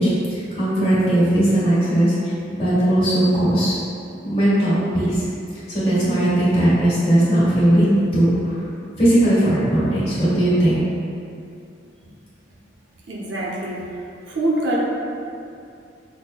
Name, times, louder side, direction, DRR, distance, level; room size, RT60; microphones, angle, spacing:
voice 1, 0.0-2.1 2.5-3.8 4.2-5.3 5.7-8.6 9.0-10.8, right 1 dB, 35° left, -11 dB, 1.4 m, -18 dB
voice 2, 13.1-13.8 14.3-14.8, right 1 dB, 65° right, -5 dB, 0.6 m, -24 dB
5.8 x 2.1 x 2.2 m, 2.5 s
head